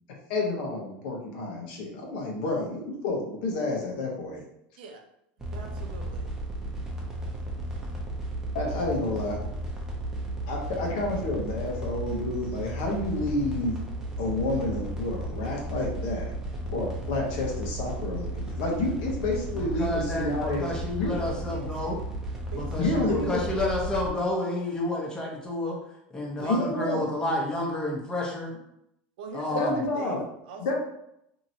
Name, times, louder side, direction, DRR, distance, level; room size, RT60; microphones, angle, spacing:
voice 1, 0.3-4.4 8.5-9.4 10.5-13.8 14.2-16.3 16.7-20.6 21.0-21.2 22.8-23.5 26.5-27.1 29.5-30.2 30.6-30.7, left 2 dB, 70° left, -1 dB, 1.0 m, -29 dB
sound 1, 5.4-24.1, right 1 dB, 10° right, 0.7 m, -34 dB
voice 2, 5.5-6.3 21.2-21.9 22.5-23.2 26.4-26.6 29.2-30.7, right 4 dB, 80° right, 3 dB, 0.6 m, -42 dB
voice 3, 19.6-22.0 22.5-25.8 26.1-28.5 29.3-29.7, left 1 dB, 15° left, -2 dB, 0.9 m, -30 dB
2.9 x 2.7 x 2.7 m, 0.79 s
supercardioid pair, 120°, 5 cm